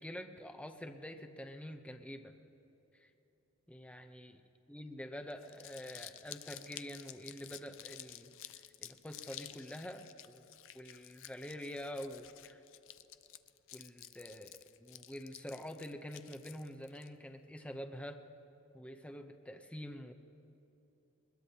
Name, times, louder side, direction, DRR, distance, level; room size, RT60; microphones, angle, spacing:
voice 1, 0.0-2.3 3.0-3.1 3.7-4.4 4.7-10.4 10.7-12.6 13.7-14.5 14.8-18.2 18.7-20.1, equal, 5° left, 5 dB, 0.7 m, -46 dB
Crumpling crinkling, 5.3-17.1, left 13 dB, 65° left, 0.5 m, -52 dB
21.5 x 20.5 x 2.9 m, 3.0 s
head